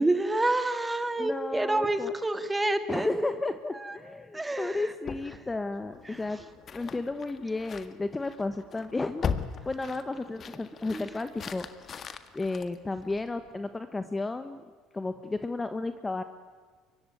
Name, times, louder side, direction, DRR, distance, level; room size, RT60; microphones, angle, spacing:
voice 1, 0.0-3.2 3.8-4.0 4.3-4.8 6.1-6.2 10.9-11.0, right 2 dB, 10° right, 10 dB, 2.1 m, -28 dB
voice 2, 1.2-2.1 2.9-6.4 6.7-9.3 9.6-11.7 12.3-14.6 14.9-16.2, left 3 dB, 15° left, 10 dB, 1.2 m, -33 dB
sound 1, 5.0-13.5, left 6 dB, 35° left, 1.7 m, -39 dB
25.0 x 23.0 x 9.2 m, 1.6 s
cardioid pair, 125°, 0 cm